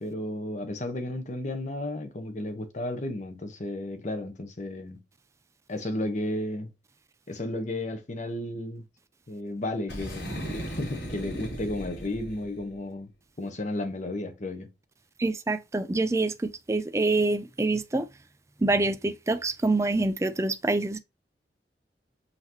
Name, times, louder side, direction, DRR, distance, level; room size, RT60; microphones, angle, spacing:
voice 1, 0.0-5.0 5.7-6.7 7.3-8.8 9.3-10.4 10.8-13.1 13.4-14.7, left 1 dB, 40° left, 0.9 m, -33 dB
Boom, 9.9-12.6, equal, 65° left, 2.7 m, -36 dB
voice 2, 15.2-18.1 18.6-21.0, right 2 dB, 15° right, 0.4 m, -26 dB
5.6 x 2.8 x 2.9 m
head